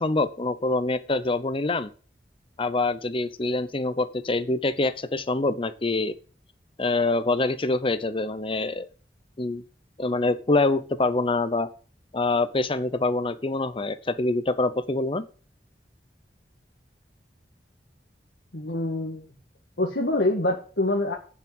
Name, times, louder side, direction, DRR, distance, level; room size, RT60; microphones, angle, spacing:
voice 1, 0.0-1.9 2.6-6.1 6.8-8.9 9.4-9.6 10.0-11.7 12.1-15.2, left 2 dB, 30° left, 12 dB, 0.8 m, -25 dB
voice 2, 18.5-19.2 19.8-21.1, left 1 dB, 70° left, -1 dB, 2.0 m, -25 dB
8.9 x 7.2 x 7.7 m, 0.39 s
head